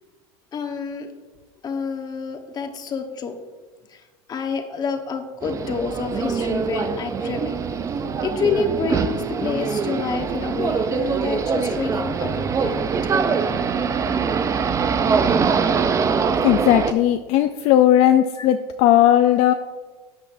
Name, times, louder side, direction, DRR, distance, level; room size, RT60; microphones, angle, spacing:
voice 1, 0.5-1.1 1.6-3.4 3.9-4.0 4.3-7.6 8.2-12.9 13.5-13.7 18.4-18.5, left 5 dB, 30° left, 5 dB, 1.2 m, -28 dB
sound 1, 5.4-16.9, right 5 dB, 25° right, 0.5 m, -23 dB
voice 2, 16.4-19.5, left 12 dB, 55° left, 8 dB, 0.5 m, -17 dB
13.0 x 8.1 x 2.6 m, 1.3 s
supercardioid pair, 120°, 13 cm